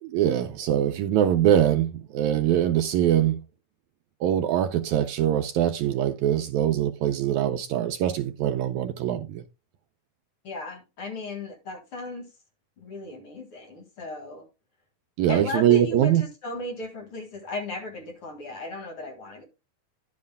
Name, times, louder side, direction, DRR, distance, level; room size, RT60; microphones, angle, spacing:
voice 1, 0.0-3.4 4.2-9.4 15.2-16.2, right 11 dB, 75° right, 1.8 m, -23 dB
voice 2, 10.4-12.3 12.8-14.5 15.3-19.4, left 2 dB, 45° left, 2.6 m, -36 dB
11.0 x 9.6 x 2.2 m
omnidirectional pair, 3.7 m